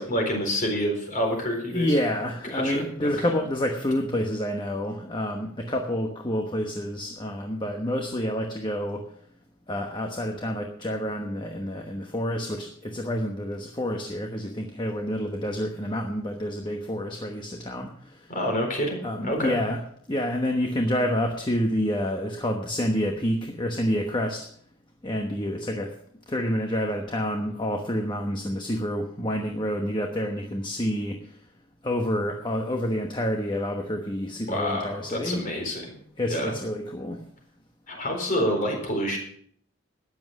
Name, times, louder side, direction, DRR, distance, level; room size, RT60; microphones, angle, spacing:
voice 1, 0.0-2.0 2.5-3.1 18.3-19.6 34.5-36.0 36.3-36.6 37.9-39.2, equal, 35° left, 2 dB, 4.1 m, -28 dB
voice 2, 1.7-9.1 9.7-18.3 19.0-19.8 20.1-24.5 25.0-25.9 26.3-31.4 31.8-35.5 36.2-37.2, equal, 20° left, 3 dB, 1.1 m, -28 dB
13.5 x 9.8 x 6.3 m, 0.63 s
head